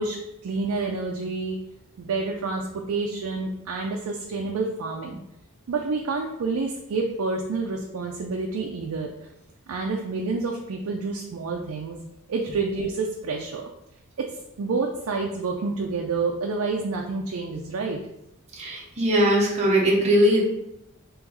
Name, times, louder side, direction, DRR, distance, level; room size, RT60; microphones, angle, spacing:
voice 1, 0.0-1.6 2.0-5.2 5.7-9.1 9.7-12.0 12.3-13.7 14.2-18.0, right 3 dB, 80° right, 1 dB, 0.4 m, -28 dB
voice 2, 18.6-20.5, equal, 30° right, -4 dB, 0.9 m, -20 dB
3.1 x 3.0 x 3.6 m, 0.85 s
head